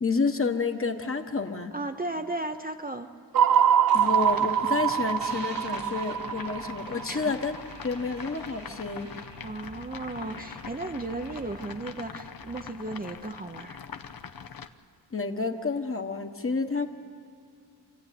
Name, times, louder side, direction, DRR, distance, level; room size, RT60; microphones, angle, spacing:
voice 1, 0.0-1.7 3.9-7.6 7.8-9.1 15.1-16.9, left 4 dB, 30° left, 5 dB, 1.3 m, -29 dB
voice 2, 1.7-3.1 7.1-7.3 9.4-13.8, right 2 dB, 20° right, 5 dB, 0.7 m, -35 dB
sound 1, 3.3-7.6, right 9 dB, 55° right, 0.5 m, -24 dB
sound 2, 3.3-12.7, right 3 dB, 85° right, 3.2 m, -47 dB
sound 3, 4.0-14.7, left 7 dB, 55° left, 0.8 m, -43 dB
28.0 x 13.0 x 9.3 m, 2.2 s
wide cardioid pair, 85°, 41 cm